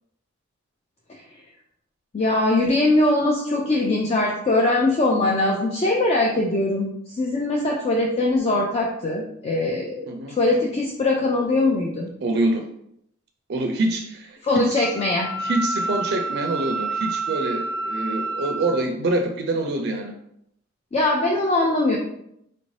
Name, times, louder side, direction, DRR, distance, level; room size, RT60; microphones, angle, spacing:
voice 1, 2.1-12.1 14.4-15.3 20.9-22.0, left 2 dB, 30° left, 0 dB, 0.4 m, -21 dB
voice 2, 10.1-10.4 12.2-12.7 13.5-14.8 15.4-20.1, right 2 dB, 55° right, 4 dB, 0.4 m, -25 dB
Wind instrument woodwind instrument, 14.7-18.8, right 2 dB, 10° left, 1.3 m, -28 dB
4.2 x 2.6 x 3.1 m, 0.76 s
head